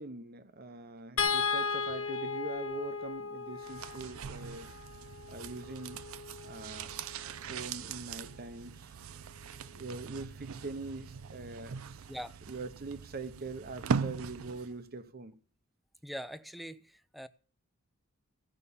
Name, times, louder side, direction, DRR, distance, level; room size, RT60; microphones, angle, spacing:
voice 1, 0.0-4.7 5.3-6.0 6.4-6.9 7.4-9.0 9.7-12.1 12.5-15.4, right 3 dB, 45° right, 0.8 m, -43 dB
sound 1, 1.2-7.5 9.0-9.2 9.6-9.7, left 5 dB, 65° left, 0.9 m, -36 dB
sound 2, 3.6-14.8 15.1-15.2, right 6 dB, 70° right, 0.5 m, -40 dB
voice 2, 12.1-12.4 16.0-17.3, equal, ahead, 0.5 m, -42 dB
16.0 x 5.6 x 6.9 m
head